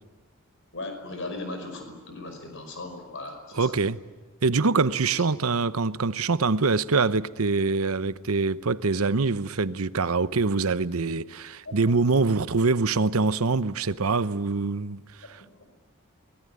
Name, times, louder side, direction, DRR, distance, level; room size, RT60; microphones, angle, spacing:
voice 1, 0.7-3.7 5.0-5.2 11.7-11.8 15.4-15.7, left 2 dB, 65° left, 5.3 m, -38 dB
voice 2, 3.6-4.0 4.4-15.4, right 4 dB, 90° right, 0.9 m, -24 dB
23.5 x 21.0 x 9.8 m
head